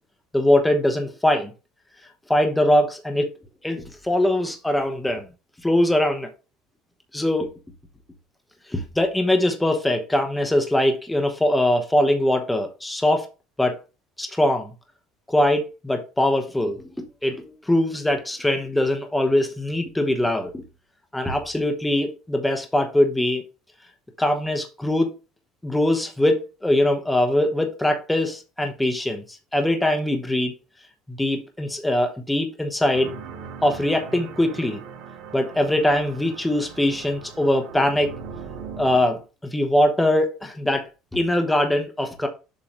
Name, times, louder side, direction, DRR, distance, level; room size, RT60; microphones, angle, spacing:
voice 1, 0.3-1.5 2.3-3.3 3.6-5.3 5.6-6.3 7.1-7.5 8.7-13.3 13.6-13.8 14.2-14.7 15.3-16.8 17.2-20.6 21.1-23.4 24.2-25.1 25.6-29.2 29.5-30.5 31.1-33.1 33.6-34.8 35.3-38.1 38.8-39.2 39.5-40.8 41.1-42.3, left 1 dB, 5° left, 1.0 m, -22 dB
sound 1, 32.9-39.2, right 6 dB, 65° right, 1.6 m, -39 dB
7.2 x 3.0 x 5.1 m
cardioid pair, 150°, 0 cm